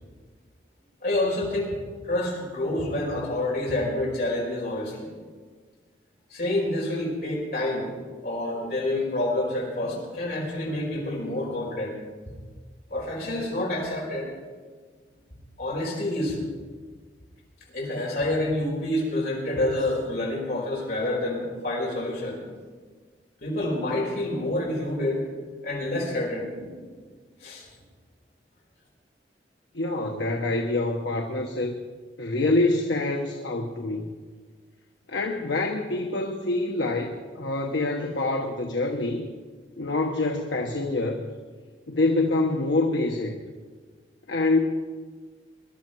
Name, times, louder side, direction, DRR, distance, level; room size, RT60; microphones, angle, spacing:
voice 1, 1.0-1.8 2.0-5.1 6.3-7.9 8.2-11.9 12.9-14.3 15.6-16.4 17.7-22.4 23.4-25.2 25.6-26.9 27.4-27.6, left 1 dB, 55° left, -5 dB, 5.1 m, -28 dB
voice 2, 29.7-31.8 32.2-34.1 35.1-39.3 39.8-41.3 41.9-43.4 44.3-44.6, left 2 dB, 90° left, 3 dB, 1.1 m, -26 dB
21.5 x 12.0 x 4.6 m, 1.5 s
head